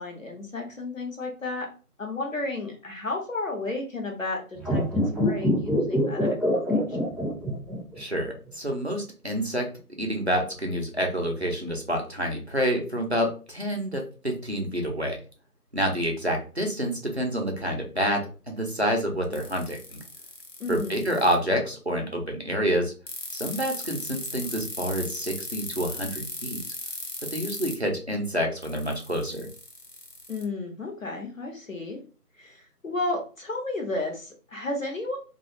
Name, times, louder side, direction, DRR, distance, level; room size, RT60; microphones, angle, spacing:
voice 1, 0.0-1.7 2.0-4.8 5.2-7.0 20.6-21.1 30.3-32.0 32.4-35.2, left 2 dB, 55° left, 1 dB, 0.9 m, -33 dB
sound 1, 4.6-8.0 8.2-8.3, left 1 dB, ahead, 0.5 m, -24 dB
voice 2, 8.0-9.6 10.0-15.2 15.7-20.0 20.7-22.9 23.3-26.6 27.3-29.5, equal, 45° right, 1 dB, 0.5 m, -28 dB
sound 2, 19.3-21.3 23.1-27.7 28.6-30.4, left 2 dB, 85° left, 1.0 m, -37 dB
2.4 x 2.3 x 2.8 m, 0.36 s
figure-of-eight pair, 170°, 47 cm